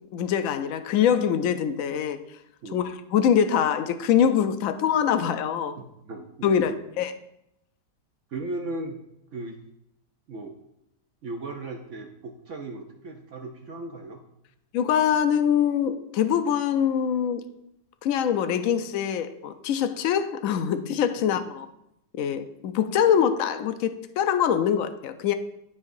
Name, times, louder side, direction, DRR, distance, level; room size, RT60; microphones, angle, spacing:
voice 1, 0.1-2.2 2.7-5.8 6.4-7.1 14.7-17.4 18.0-21.7 22.2-25.3, left 8 dB, 70° left, 0.8 m, -24 dB
voice 2, 5.8-6.8 8.3-9.0 9.3-9.6 10.3-10.6 11.2-14.2, right 2 dB, 60° right, 0.8 m, -36 dB
12.5 x 4.8 x 2.6 m
omnidirectional pair, 1.8 m